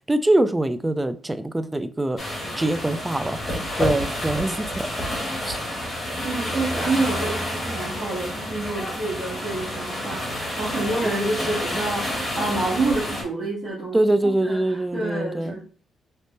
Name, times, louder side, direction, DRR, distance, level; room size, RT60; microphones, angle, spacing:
voice 1, 0.1-2.2 2.6-3.4 3.8-4.9 5.4-5.6 11.0-11.3 13.9-15.6, right 1 dB, 10° right, 0.3 m, -23 dB
sound 1, 2.2-13.2, equal, 25° left, 1.9 m, -29 dB
voice 2, 6.2-14.0 14.4-15.6, right 2 dB, 50° right, 2.1 m, -28 dB
3.9 x 3.5 x 2.7 m
cardioid pair, 135°, 0 cm